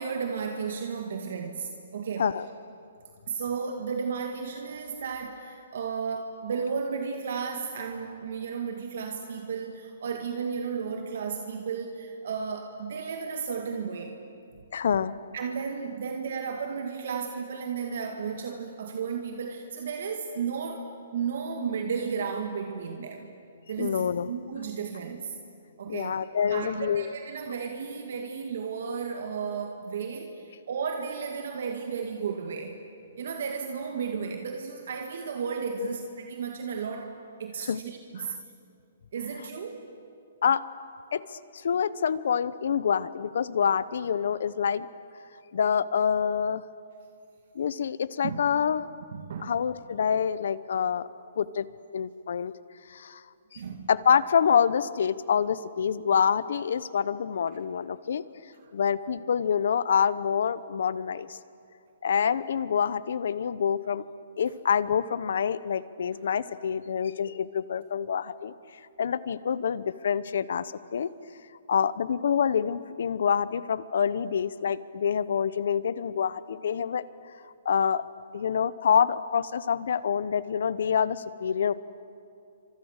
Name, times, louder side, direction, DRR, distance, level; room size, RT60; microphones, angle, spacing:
voice 1, 0.0-2.4 3.3-14.1 15.3-23.3 23.7-25.4 25.8-26.2 26.5-32.8 33.2-38.3 39.1-39.8 48.2-48.4 49.1-49.6 53.6-53.9, right 6 dB, 60° right, 3 dB, 2.1 m, -33 dB
voice 2, 14.7-15.2 23.8-24.3 25.9-27.1 35.8-35.9 37.7-37.8 40.4-40.6 41.1-44.9 45.5-46.6 47.5-48.9 49.4-51.1 51.4-51.7 51.9-52.5 52.9-53.2 53.9-58.2 58.7-61.4 62.0-64.0 64.4-68.5 69.0-71.1 71.7-77.0 77.6-78.0 78.3-81.7, left 7 dB, 65° left, 16 dB, 0.9 m, -26 dB
29.5 x 25.5 x 6.7 m, 2.5 s
hypercardioid pair, 160°, 0 cm